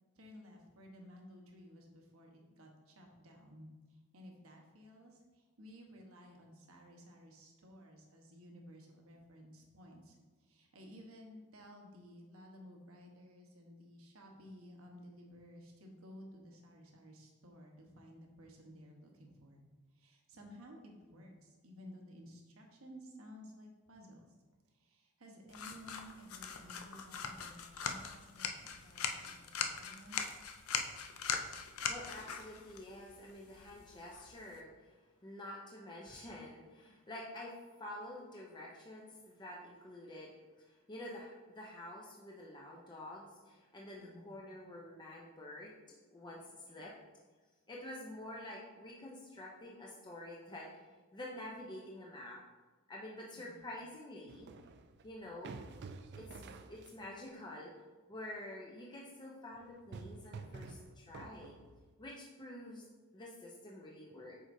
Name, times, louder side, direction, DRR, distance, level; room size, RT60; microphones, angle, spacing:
voice 1, 0.1-19.7 19.9-24.3 24.7-30.2 44.0-44.4 53.3-53.6, equal, 75° right, 1 dB, 1.1 m, -55 dB
sound 1, 25.5-34.6, left 6 dB, 80° left, 0.5 m, -41 dB
voice 2, 31.9-34.9 35.2-46.9 47.7-50.8 51.1-52.4 52.9-54.5 55.0-55.5 56.2-57.7 58.1-61.6 62.0-64.3, left 1 dB, 20° left, -3 dB, 0.6 m, -48 dB
sound 2, 54.3-57.2 59.6-61.9, right 4 dB, 55° right, 0.4 m, -50 dB
7.8 x 4.8 x 2.7 m, 1.3 s
head